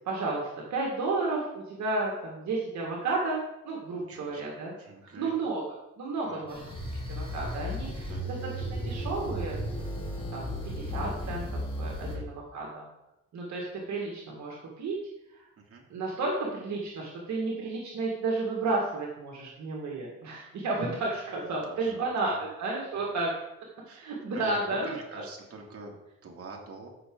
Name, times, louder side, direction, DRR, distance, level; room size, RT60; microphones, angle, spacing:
voice 1, 0.1-4.8 5.0-5.6 6.0-6.7 7.0-9.6 10.3-12.9 13.3-15.0 15.3-15.4 15.9-23.3 24.0-25.2, right 3 dB, 65° right, -2 dB, 1.9 m, -32 dB
voice 2, 4.0-4.5 4.8-5.3 6.2-6.5 8.0-8.3 12.1-12.3 15.6-15.8 21.7-22.4 22.9-23.1 23.8-24.1 24.3-26.9, right 3 dB, 50° right, 0 dB, 2.4 m, -46 dB
sound 1, 6.5-12.2, equal, 15° left, 2.5 m, -35 dB
12.5 x 5.9 x 3.8 m, 0.91 s
cardioid pair, 90°, 30 cm